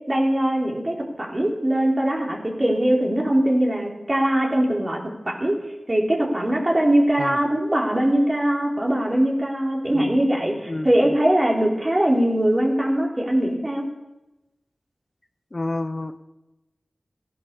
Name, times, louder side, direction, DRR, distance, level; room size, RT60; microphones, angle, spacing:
voice 1, 0.1-5.0 5.3-5.6 5.9-13.8, right 1 dB, 35° right, -1 dB, 3.9 m, -21 dB
voice 2, 15.5-16.2, left 2 dB, 45° left, 10 dB, 0.8 m, -29 dB
16.5 x 10.5 x 6.8 m, 0.98 s
cardioid pair, 45°, 0 cm